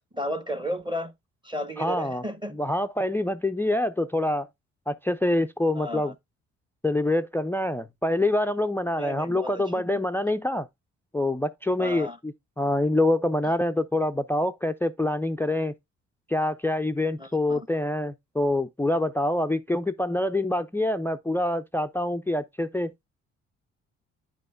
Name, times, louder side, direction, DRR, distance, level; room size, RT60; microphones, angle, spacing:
voice 1, 0.1-1.1 1.4-2.6 5.7-6.1 9.0-10.0 11.8-12.2 17.2-17.7, equal, 15° right, 0.9 m, -33 dB
voice 2, 1.8-2.2 2.5-4.5 4.9-6.1 6.8-10.7 11.1-15.7 16.3-22.9, left 1 dB, 5° left, 0.4 m, -26 dB
9.7 x 5.0 x 2.4 m
figure-of-eight pair, 50°, 36 cm